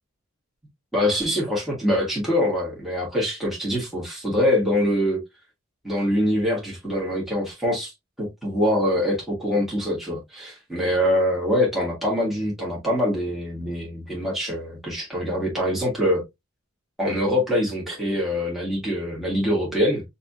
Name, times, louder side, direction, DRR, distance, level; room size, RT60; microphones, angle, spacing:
voice 1, 0.9-5.2 5.8-16.2 17.0-20.0, left 1 dB, ahead, 1.4 m, -24 dB
5.5 x 2.7 x 2.3 m
head